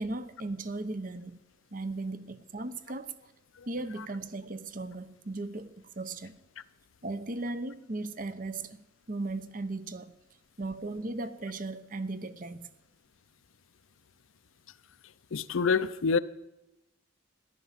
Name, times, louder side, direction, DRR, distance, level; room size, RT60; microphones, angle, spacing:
voice 1, 0.0-1.4 1.7-3.1 3.7-6.3 7.0-10.1 10.6-12.7, right 2 dB, 40° right, 0.8 m, -37 dB
voice 2, 15.3-16.2, left 5 dB, 80° left, 0.6 m, -26 dB
14.0 x 11.0 x 7.4 m
head